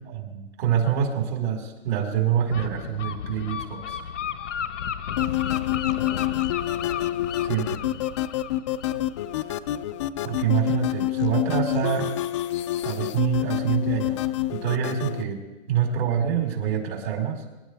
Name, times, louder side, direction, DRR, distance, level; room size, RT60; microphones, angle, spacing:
voice 1, 0.0-4.0 7.4-7.9 10.2-12.1 12.8-14.2 14.5-15.4 15.7-17.4, right 8 dB, 60° right, 1 dB, 4.6 m, -26 dB
Gull seagull, 2.5-10.0, left 8 dB, 85° left, 1.1 m, -33 dB
sound 1, 5.2-15.2, left 15 dB, 25° left, 0.4 m, -27 dB
26.0 x 12.0 x 3.4 m, 1.1 s
hypercardioid pair, 145°, 35 cm